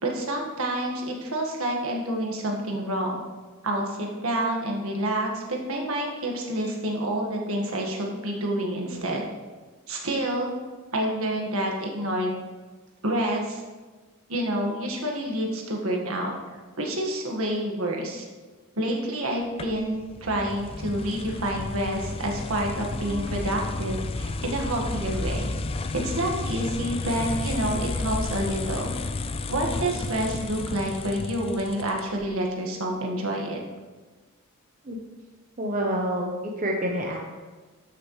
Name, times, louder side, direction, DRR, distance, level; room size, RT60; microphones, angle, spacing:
voice 1, 0.0-3.2 3.6-9.2 9.9-10.5 10.9-12.4 13.0-13.6 14.3-16.3 16.8-18.3 18.8-25.5 25.9-28.9 29.5-33.6, right 1 dB, 70° right, 0 dB, 1.7 m, -28 dB
sound 1, 19.6-32.3, left 3 dB, 25° left, 0.3 m, -32 dB
voice 2, 35.6-37.2, equal, 35° right, -1 dB, 0.9 m, -27 dB
12.5 x 6.4 x 3.2 m, 1.3 s
head